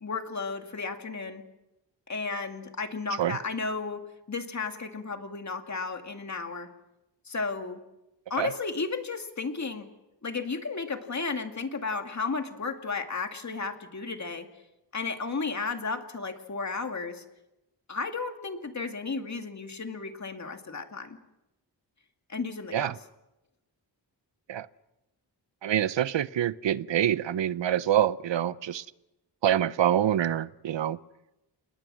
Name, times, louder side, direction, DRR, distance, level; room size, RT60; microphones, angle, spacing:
voice 1, 0.0-1.4 2.1-6.7 7.3-7.8 8.3-9.9 10.2-14.5 14.9-17.2 17.9-21.2 22.3-22.9, left 4 dB, 40° left, 5 dB, 2.2 m, -33 dB
voice 2, 25.6-28.9 29.4-31.0, right 11 dB, 80° right, 16 dB, 0.8 m, -26 dB
29.0 x 20.5 x 6.3 m, 0.96 s
wide cardioid pair, 135°, 43 cm